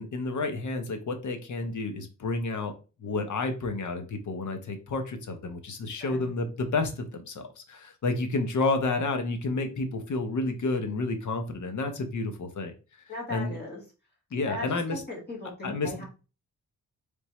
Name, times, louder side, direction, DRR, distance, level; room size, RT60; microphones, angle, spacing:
voice 1, 0.0-2.7 3.0-12.7 13.3-13.5 14.3-15.0 15.6-16.0, left 3 dB, 60° left, 7 dB, 0.9 m, -30 dB
voice 2, 6.0-6.3 13.1-13.8 14.4-16.0, left 2 dB, 30° left, -2 dB, 2.2 m, -38 dB
4.0 x 3.5 x 3.1 m, 0.32 s
wide cardioid pair, 105°, 34 cm